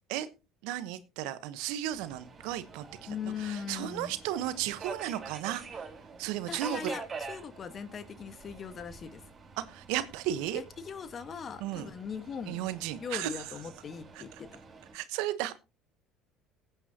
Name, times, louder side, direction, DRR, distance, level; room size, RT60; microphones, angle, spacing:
voice 1, 0.6-5.9 6.2-6.9 9.7-10.6 11.6-11.9 12.5-13.4 14.1-14.2 14.9-15.5, right 12 dB, 75° right, 13 dB, 1.2 m, -34 dB
Subway metro underground, 1.9-14.9, right 4 dB, 35° right, 4.8 m, -46 dB
voice 2, 3.1-4.1 6.5-9.2 10.5-12.6 13.0-14.6, left 7 dB, 40° left, 12 dB, 1.6 m, -40 dB
18.0 x 9.0 x 2.9 m, 0.28 s
hypercardioid pair, 75°, 0 cm